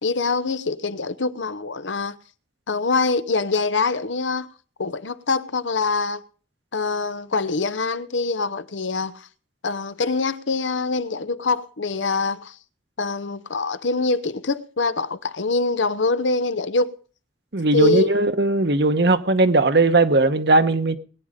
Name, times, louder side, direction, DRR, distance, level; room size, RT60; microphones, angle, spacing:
voice 1, 0.0-2.2 2.7-4.5 4.8-6.2 6.7-9.3 9.6-12.6 13.0-16.9 17.7-18.2, left 3 dB, 90° left, 0.9 m, -24 dB
voice 2, 17.5-21.0, right 2 dB, 60° right, 1.2 m, -18 dB
20.5 x 9.9 x 5.1 m
head